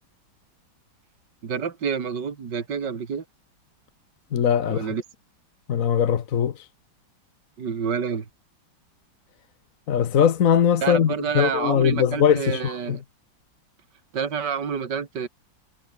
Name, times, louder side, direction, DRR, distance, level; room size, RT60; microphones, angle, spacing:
voice 1, 1.4-3.2 4.7-5.0 7.6-8.3 10.8-13.0 14.1-15.3, right 6 dB, 60° right, 2.9 m, -28 dB
voice 2, 4.3-4.9 5.7-6.6 9.9-13.0, left 8 dB, 50° left, 1.2 m, -21 dB
omnidirectional pair, 2.1 m